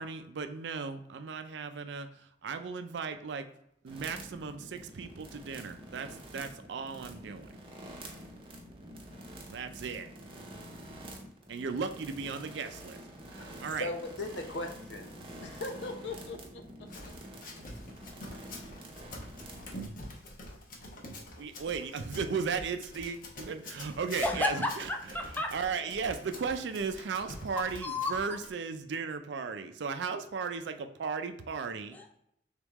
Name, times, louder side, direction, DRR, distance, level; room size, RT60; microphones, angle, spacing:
voice 1, 0.0-3.5 3.8-7.5 9.5-10.1 11.5-13.0 13.3-13.9 21.1-24.9 25.5-32.0, right 5 dB, 80° right, 8 dB, 0.4 m, -36 dB
sound 1, 3.9-19.9, right 1 dB, 30° right, 0.7 m, -47 dB
voice 2, 13.8-16.6, left 2 dB, 85° left, 5 dB, 0.7 m, -39 dB
Run, 16.9-28.5, left 1 dB, 50° left, 0.8 m, -46 dB
voice 3, 24.2-25.5 27.8-28.1 31.9-32.2, left 2 dB, 10° left, 2 dB, 0.6 m, -32 dB
3.6 x 3.5 x 3.0 m, 0.75 s
head